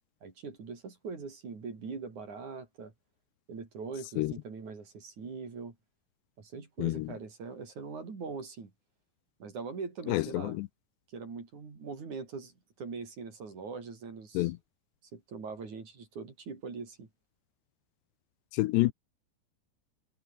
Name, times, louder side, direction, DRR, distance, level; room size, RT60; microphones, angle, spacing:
voice 1, 0.2-2.9 3.5-5.8 6.4-8.7 9.4-10.6 11.1-14.5 15.1-17.1, right 4 dB, 45° right, 5.6 m, -42 dB
voice 2, 10.1-10.7 14.3-14.6 18.5-18.9, left 19 dB, 85° left, 2.8 m, -28 dB
omnidirectional pair, 5.1 m